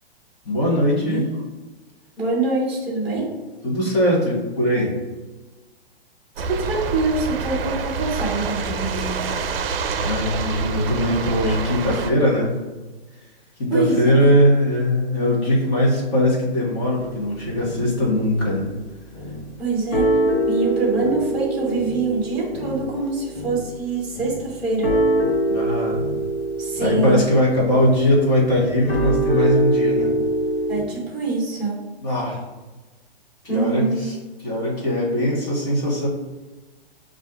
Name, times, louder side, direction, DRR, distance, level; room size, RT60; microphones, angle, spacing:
voice 1, 0.4-1.2 3.6-5.0 10.0-12.5 13.6-18.7 25.5-26.0 26.8-30.1 32.0-32.4 33.5-33.9 34.4-36.1, left 1 dB, 25° left, -5 dB, 1.2 m, -20 dB
voice 2, 2.2-3.3 6.5-9.1 13.7-14.3 19.6-20.1 20.5-24.9 26.6-27.2 30.7-31.8 33.5-34.0 34.5-34.6, right 3 dB, 5° right, -5 dB, 1.0 m, -24 dB
sound 1, 6.4-12.1, right 4 dB, 70° right, 0.5 m, -27 dB
sound 2, 16.9-18.0 18.4-18.8 19.1-19.6 19.9-30.8, right 1 dB, 80° left, 1.4 m, -24 dB
7.1 x 2.6 x 2.3 m, 1.2 s
hypercardioid pair, 165°, 30 cm